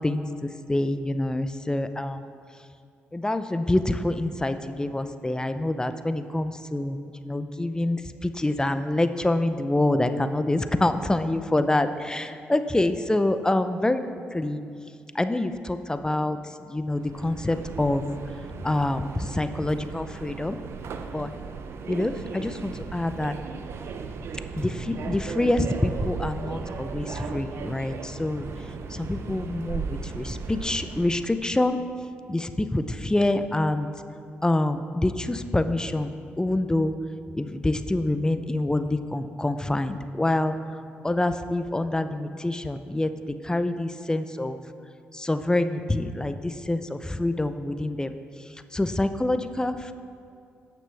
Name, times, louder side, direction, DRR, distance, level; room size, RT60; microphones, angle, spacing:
voice 1, 0.0-2.2 3.1-14.0 14.3-14.6 15.1-16.4 16.7-18.0 18.6-20.6 21.1-21.3 21.9-23.3 24.5-28.5 28.9-31.8 32.3-33.9 34.4-36.9 37.3-40.5 41.0-43.1 43.4-44.6 45.1-48.1 48.7-49.9, left 1 dB, 15° left, 10 dB, 0.6 m, -26 dB
Subway metro underground, 16.9-31.3, right 5 dB, 65° right, 0.6 m, -36 dB
17.5 x 6.1 x 3.4 m, 2.4 s
supercardioid pair, 50°, 5 cm